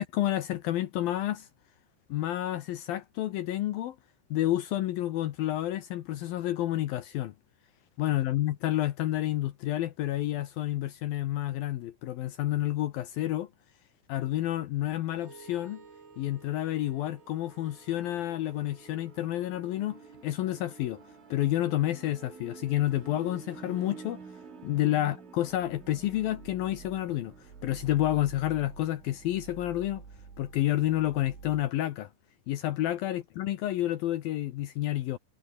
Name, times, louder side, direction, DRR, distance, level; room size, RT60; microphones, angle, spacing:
voice 1, 0.0-1.5 2.1-4.0 4.3-7.3 8.0-13.5 14.1-15.8 16.2-21.0 21.3-24.2 24.6-30.0 30.4-32.1 32.5-35.2, left 14 dB, 80° left, 2.1 m, -30 dB
sound 1, 15.1-31.7, right 5 dB, 85° right, 9.6 m, -49 dB
omnidirectional pair, 5.5 m